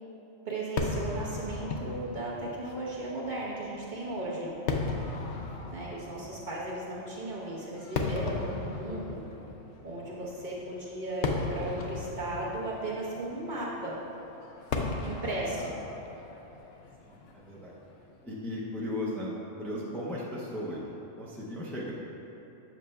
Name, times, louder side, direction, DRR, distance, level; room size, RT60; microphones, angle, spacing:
voice 1, 0.4-4.5 5.7-9.2 9.8-14.0 15.0-15.7, right 2 dB, 40° right, -6 dB, 1.0 m, -36 dB
Fireworks, 0.8-18.1, left 3 dB, 70° left, 0.8 m, -37 dB
voice 2, 5.4-5.8 6.2-6.4 17.0-17.7 18.2-20.9 21.2-21.9, left 1 dB, 5° left, -6 dB, 0.4 m, -37 dB
7.4 x 6.4 x 2.3 m, 3.0 s
omnidirectional pair, 1.3 m